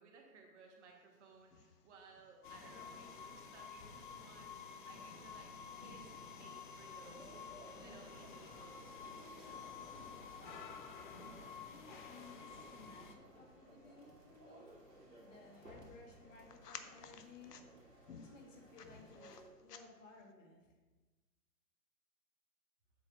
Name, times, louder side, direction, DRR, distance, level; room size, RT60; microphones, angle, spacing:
voice 1, 0.0-5.5 5.8-7.3 7.7-9.6, right 4 dB, 45° right, 0 dB, 1.8 m, -61 dB
sound 1, 0.9-20.3, left 6 dB, 70° left, 0.8 m, -61 dB
sound 2, 2.4-13.1, left 5 dB, 30° left, 0.6 m, -51 dB
sound 3, 6.2-19.5, right 1 dB, 85° right, 2.4 m, -60 dB
voice 2, 11.6-14.9 15.2-20.7, left 3 dB, 50° left, 1 dB, 1.7 m, -59 dB
7.7 x 4.2 x 6.1 m, 1.3 s
figure-of-eight pair, 125°, 48 cm